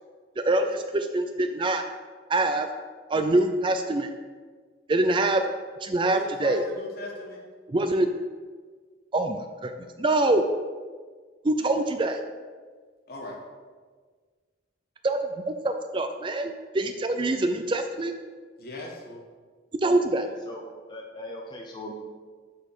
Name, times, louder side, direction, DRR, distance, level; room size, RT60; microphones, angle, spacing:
voice 1, 0.4-1.8 2.3-2.7 3.1-4.1 4.9-5.4 5.8-6.6 7.7-8.1 9.1-9.7 10.0-10.4 11.4-12.2 15.0-15.2 15.6-18.1 19.8-20.3, right 2 dB, 25° right, 7 dB, 0.4 m, -24 dB
voice 2, 6.0-7.4 13.1-13.3 18.6-19.2, left 2 dB, 50° left, -1 dB, 1.6 m, -38 dB
voice 3, 20.9-21.9, left 1 dB, 25° left, -2 dB, 0.8 m, -39 dB
7.5 x 4.1 x 6.6 m, 1.5 s
head